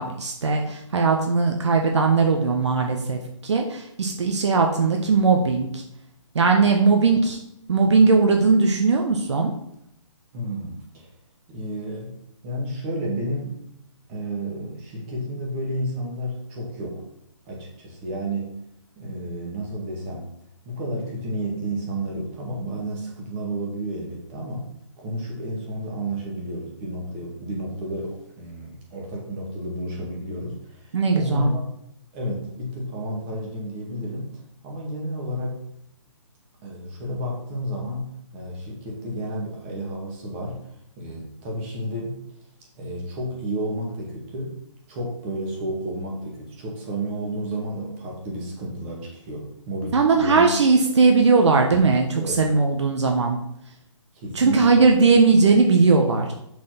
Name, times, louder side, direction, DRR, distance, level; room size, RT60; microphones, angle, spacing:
voice 1, 0.0-5.8 6.3-7.4 7.7-9.5 30.9-31.5 49.9-53.4 54.3-56.3, right 4 dB, 60° right, 3 dB, 1.2 m, -19 dB
voice 2, 10.3-11.1 11.5-12.2 12.4-13.6 14.1-17.1 17.5-18.6 19.0-20.3 20.7-24.7 25.0-31.7 32.1-34.3 34.6-35.6 36.6-40.7 41.0-42.2 42.8-44.6 44.9-50.5 52.2-52.4 54.1-54.7 55.5-55.6, right 1 dB, 25° right, -1 dB, 2.0 m, -31 dB
6.0 x 4.4 x 5.9 m, 0.76 s
hypercardioid pair, 160°, 16 cm